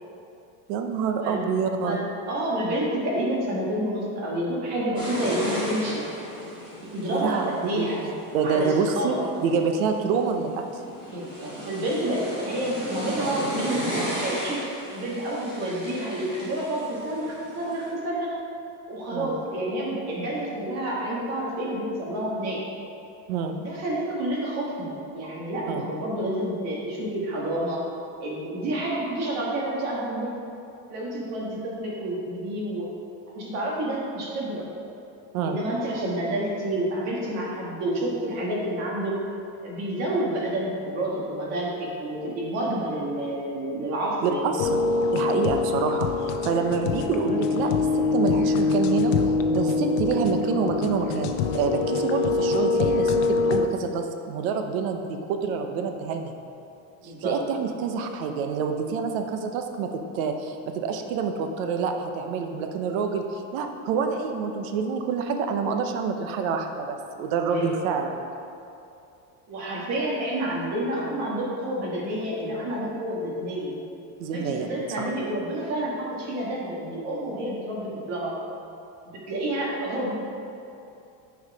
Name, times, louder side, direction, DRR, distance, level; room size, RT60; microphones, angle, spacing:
voice 1, 0.7-2.0 7.1-7.4 7.8-7.9 8.3-9.1 9.4-10.6 19.1-19.3 23.3-23.6 25.7-25.9 35.3-35.6 44.2-44.7 45.1-49.1 49.5-56.3 57.2-68.1 74.2-74.7, right 5 dB, 80° right, 5 dB, 0.9 m, -27 dB
voice 2, 1.8-6.0 6.8-8.0 8.4-9.2 11.1-14.6 14.9-18.3 18.9-22.6 23.6-27.8 28.2-30.3 30.9-32.9 33.3-34.7 35.4-39.1 39.6-44.5 57.0-57.4 67.5-67.9 69.5-73.7 74.3-78.3 79.1-80.1, right 1 dB, 40° right, -4 dB, 1.8 m, -29 dB
sound 1, 5.0-17.9, equal, 10° right, 1.9 m, -35 dB
sound 2, 44.6-53.7, left 4 dB, 70° left, 0.7 m, -24 dB
9.3 x 4.8 x 4.8 m, 2.7 s
cardioid pair, 180°, 39 cm